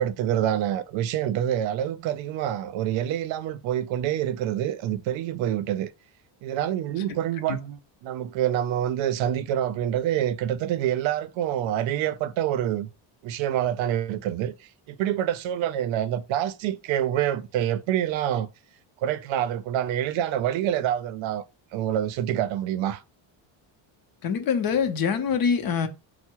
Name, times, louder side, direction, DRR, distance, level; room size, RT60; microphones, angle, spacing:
voice 1, 0.0-5.9 6.4-12.9 13.2-14.5 14.9-18.5 19.0-21.4 21.7-23.0, right 11 dB, 70° right, 0.6 m, -26 dB
voice 2, 24.2-25.9, left 6 dB, 45° left, 0.7 m, -24 dB
4.4 x 2.1 x 4.4 m
cardioid pair, 150°, 48 cm